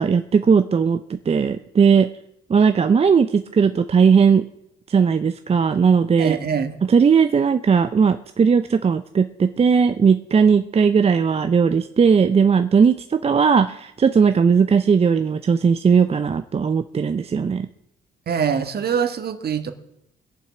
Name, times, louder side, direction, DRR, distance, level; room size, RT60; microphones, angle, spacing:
voice 1, 0.0-2.1 2.5-4.4 4.9-6.4 6.9-17.7, right 6 dB, 30° right, 9 dB, 0.5 m, -17 dB
voice 2, 6.2-6.8 18.3-19.7, right 7 dB, 50° right, 9 dB, 1.5 m, -23 dB
21.0 x 7.2 x 6.0 m, 0.80 s
cardioid pair, 90°, 20 cm